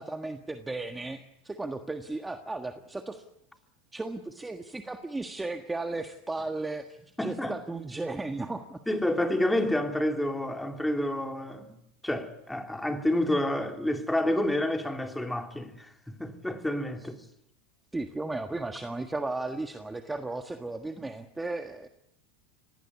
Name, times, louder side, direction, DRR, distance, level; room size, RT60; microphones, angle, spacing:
voice 1, 0.0-3.2 3.9-8.8 17.9-21.9, right 2 dB, 10° right, 1.5 m, -35 dB
voice 2, 7.2-7.6 8.9-11.8 12.0-15.9 16.2-17.2, left 1 dB, 5° left, 2.9 m, -29 dB
25.5 x 18.5 x 8.4 m
hypercardioid pair, 100°, 0 cm